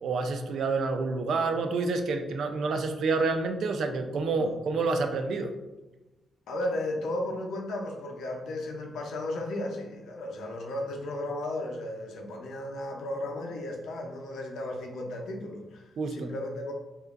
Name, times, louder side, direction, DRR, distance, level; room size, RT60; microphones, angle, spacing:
voice 1, 0.0-5.5 16.0-16.3, right 3 dB, 65° right, 6 dB, 0.4 m, -28 dB
voice 2, 6.5-16.7, left 1 dB, 90° left, 1 dB, 0.7 m, -34 dB
5.0 x 2.6 x 2.5 m, 1.1 s
wide cardioid pair, 155°, 0 cm